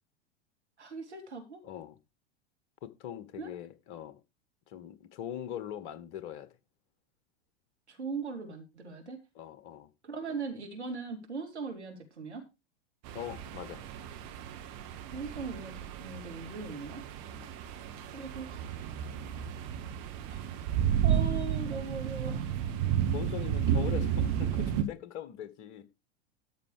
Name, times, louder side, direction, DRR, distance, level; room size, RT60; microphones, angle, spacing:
voice 1, 0.8-1.6 3.4-3.5 7.9-9.2 10.0-12.5 15.1-17.0 18.1-18.6 20.3-20.4 21.0-22.5, right 4 dB, 80° right, 3.5 m, -39 dB
voice 2, 1.6-2.0 2.8-4.2 4.7-6.5 9.3-9.9 13.1-13.8 17.3-17.5 23.1-25.8, left 11 dB, 50° left, 1.7 m, -41 dB
sound 1, 13.0-24.8, right 9 dB, 50° right, 2.1 m, -32 dB
13.0 x 6.8 x 5.0 m
figure-of-eight pair, 90°, 33 cm